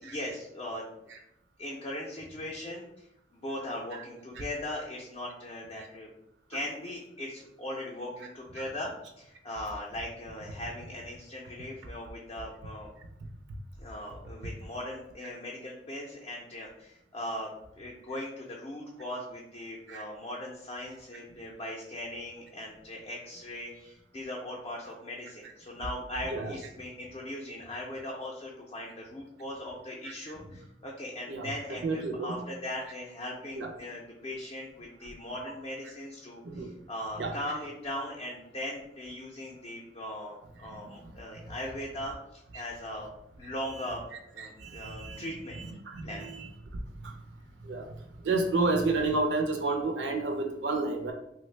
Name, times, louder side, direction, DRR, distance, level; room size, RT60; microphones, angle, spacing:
voice 1, 0.0-0.9 1.6-3.1 3.3-6.1 6.5-8.9 9.2-12.9 13.8-43.1 43.4-44.0 44.3-45.6 46.0-46.3, left 1 dB, 30° left, -2 dB, 0.4 m, -39 dB
voice 2, 31.8-32.4 33.5-33.7 36.4-36.7 37.2-37.3 40.6-40.9 43.4-43.5 44.1-46.5 47.0-47.1 47.6-48.0 48.2-51.1, right 3 dB, 90° right, 3 dB, 0.4 m, -31 dB
3.2 x 2.1 x 3.1 m, 0.83 s
head